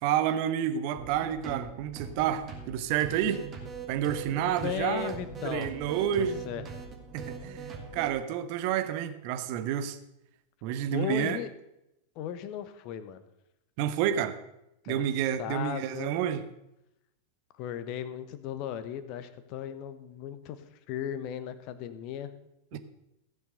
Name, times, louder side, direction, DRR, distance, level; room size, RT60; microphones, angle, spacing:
voice 1, 0.0-3.4 3.9-5.1 5.4-6.4 7.1-7.6 7.9-10.0 10.6-11.4 13.8-14.4 14.9-16.4 22.7-22.8, right 10 dB, 45° right, 10 dB, 1.1 m, -29 dB
sound 1, 1.0-8.1, right 5 dB, 30° right, 2.9 m, -41 dB
voice 2, 4.3-5.7 6.2-6.6 10.9-11.5 12.1-13.2 14.8-15.0 15.4-16.1 17.5-22.3 22.7-22.8, left 10 dB, 40° left, 12 dB, 1.1 m, -36 dB
15.5 x 6.9 x 6.6 m, 0.87 s
figure-of-eight pair, 90°, 0 cm